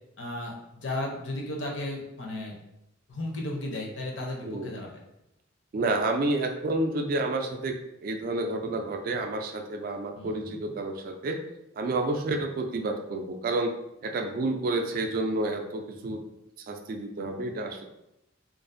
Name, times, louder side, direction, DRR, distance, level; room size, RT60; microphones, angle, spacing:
voice 1, 0.2-2.6 3.1-5.0 10.2-10.6, left 1 dB, 65° left, 0 dB, 0.6 m, -35 dB
voice 2, 5.7-7.8 8.0-11.4 11.7-13.7 14.0-16.2 16.7-17.8, right 2 dB, 45° right, 4 dB, 0.3 m, -29 dB
2.5 x 2.3 x 2.5 m, 0.86 s
head